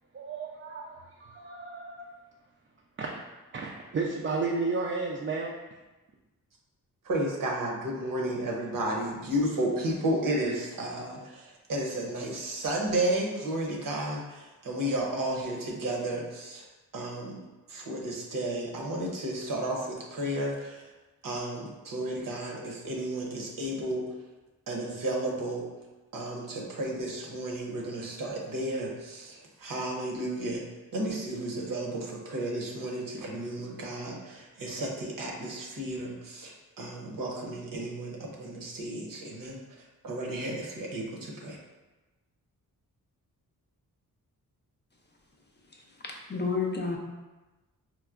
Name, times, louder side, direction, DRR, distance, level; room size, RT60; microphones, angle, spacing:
voice 1, 0.1-2.2 3.0-3.2 3.5-5.8, right 3 dB, 35° right, -3 dB, 0.4 m, -33 dB
voice 2, 7.0-16.7 16.9-17.4 17.7-20.9 21.2-24.0 24.7-25.7 26.1-30.6 30.9-41.6, right 1 dB, 60° right, -2 dB, 0.8 m, -33 dB
voice 3, 46.0-47.0, left 4 dB, 30° left, 0 dB, 0.4 m, -30 dB
4.5 x 2.0 x 2.4 m, 1.1 s
cardioid pair, 75°, 37 cm